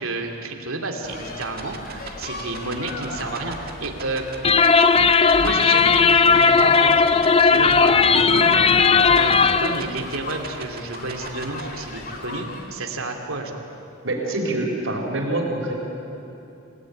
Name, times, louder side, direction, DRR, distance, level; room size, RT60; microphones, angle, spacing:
voice 1, 0.0-4.3 4.8-4.9 5.2-6.9 7.4-13.6, right 2 dB, 85° right, 3 dB, 2.8 m, -31 dB
sound 1, 1.0-12.9, left 2 dB, 45° left, 2.6 m, -37 dB
sound 2, 1.4-11.6, right 6 dB, 45° right, 2.0 m, -36 dB
sound 3, 4.4-9.8, left 5 dB, 25° left, 0.5 m, -16 dB
voice 2, 14.0-15.8, right 2 dB, 70° right, -1 dB, 4.5 m, -25 dB
27.5 x 18.0 x 9.9 m, 2.8 s
head